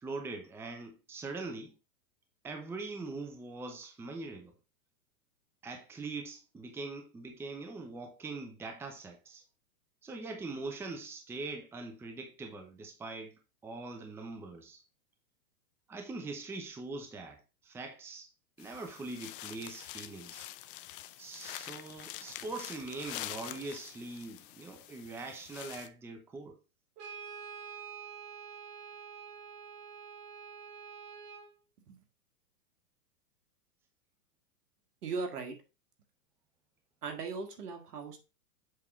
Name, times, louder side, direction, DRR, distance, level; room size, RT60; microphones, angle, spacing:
voice 1, 0.0-1.7 2.4-4.5 5.6-9.4 10.0-14.8 15.9-18.3 18.6-20.5 21.2-26.6, right 3 dB, 5° right, 0.6 m, -42 dB
sound 1, 18.6-25.9, left 14 dB, 40° left, 0.4 m, -46 dB
Brass instrument, 27.0-31.5, right 7 dB, 35° right, 1.3 m, -47 dB
voice 2, 35.0-35.6 37.0-38.2, right 4 dB, 85° right, 1.7 m, -38 dB
7.5 x 3.5 x 3.9 m
hypercardioid pair, 130°, 45 cm